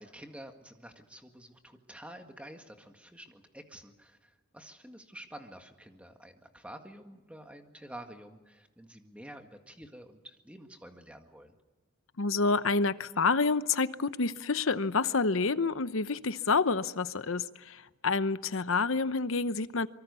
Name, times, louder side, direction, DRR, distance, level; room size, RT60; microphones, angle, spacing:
voice 1, 0.0-11.5, right 1 dB, 5° right, 5 dB, 1.8 m, -49 dB
voice 2, 12.2-19.9, left 4 dB, 65° left, 14 dB, 0.9 m, -28 dB
25.5 x 24.0 x 6.9 m, 1.2 s
head